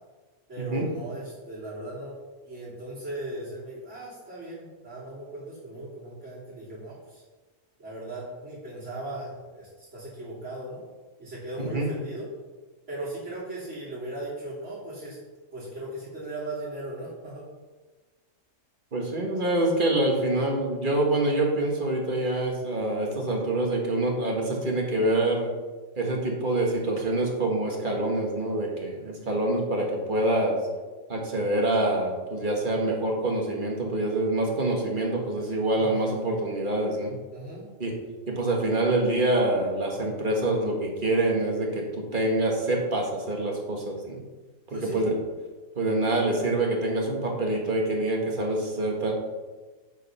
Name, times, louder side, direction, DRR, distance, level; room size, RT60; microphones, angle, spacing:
voice 1, 0.5-2.2 2.4-7.2 7.8-10.8 11.2-12.3 12.9-15.2 15.5-17.4 35.8-36.2 37.3-37.7 44.7-45.1, right 1 dB, 60° right, -14 dB, 3.5 m, -37 dB
voice 2, 18.9-25.5 26.0-30.6 31.1-37.2 37.8-37.9 38.3-41.8 42.1-44.2 44.7-45.1 45.8-49.1, right 2 dB, 40° right, 0 dB, 1.6 m, -26 dB
8.1 x 5.2 x 5.5 m, 1.3 s
omnidirectional pair, 1.3 m